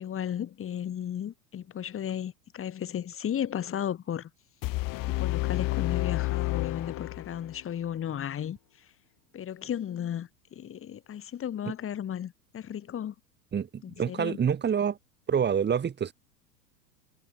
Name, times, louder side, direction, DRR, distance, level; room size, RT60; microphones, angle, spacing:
voice 1, 0.0-4.3 5.0-8.6 9.3-13.1 13.8-14.4, left 9 dB, 25° left, 4.5 m, -34 dB
sound 1, 4.6-7.6, left 21 dB, 40° left, 6.2 m, -30 dB
voice 2, 13.5-15.0 15.3-16.1, right 7 dB, 20° right, 4.2 m, -27 dB
figure-of-eight pair, 90°, 49 cm